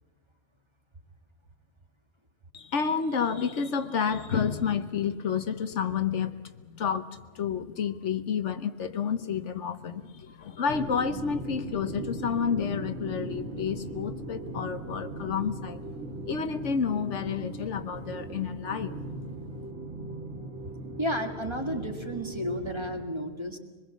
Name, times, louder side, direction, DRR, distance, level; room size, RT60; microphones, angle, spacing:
voice 1, 2.5-15.9 16.3-19.0, left 6 dB, 70° left, 10 dB, 1.2 m, -30 dB
sound 1, 10.7-23.1, right 2 dB, 75° right, 2.1 m, -39 dB
voice 2, 21.0-23.6, equal, 20° right, 3 dB, 1.8 m, -32 dB
24.5 x 21.0 x 7.1 m, 1.4 s
omnidirectional pair, 1.3 m